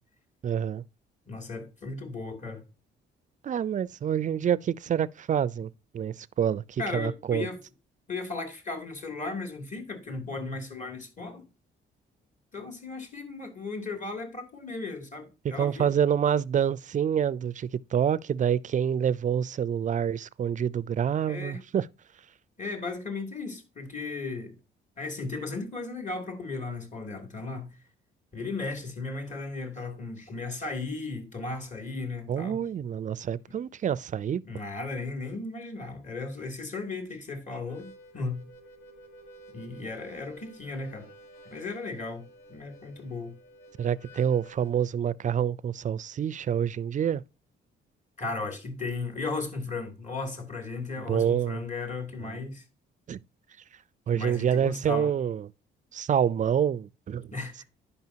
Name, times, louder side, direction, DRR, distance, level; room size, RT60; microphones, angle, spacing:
voice 1, 0.4-0.8 3.4-7.5 15.4-21.9 32.3-34.4 43.8-47.2 51.0-51.6 52.2-52.4 53.1-53.2 54.1-55.5 55.9-57.3, right 8 dB, 40° right, 0.4 m, -27 dB
voice 2, 1.3-2.6 6.8-7.6 8.1-11.4 12.5-15.9 21.3-21.6 22.6-24.6 25.0-27.8 28.3-32.6 34.4-38.4 39.5-41.1 41.5-43.3 48.2-52.6 54.1-55.1 57.3-57.6, left 3 dB, 40° left, 2.9 m, -36 dB
Harmonica, 37.6-44.9, right 1 dB, 90° left, 1.8 m, -52 dB
10.5 x 5.5 x 2.8 m
cardioid pair, 90°, 20 cm